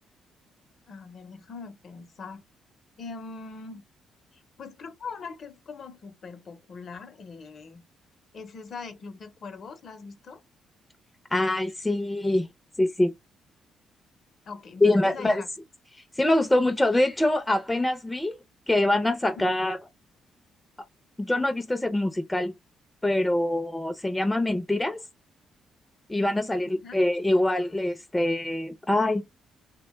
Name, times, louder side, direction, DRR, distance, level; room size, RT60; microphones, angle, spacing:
voice 1, 0.9-2.4 3.0-3.8 4.3-7.8 8.3-10.4 14.4-15.5 26.6-26.9, left 4 dB, 55° left, 0.7 m, -41 dB
voice 2, 11.3-12.5 12.8-13.1 14.8-15.4 16.2-18.4 18.7-19.8 21.2-22.5 23.0-25.0 26.1-29.2, left 1 dB, 10° left, 0.5 m, -24 dB
2.9 x 2.1 x 3.0 m
cardioid pair, 90°, 0 cm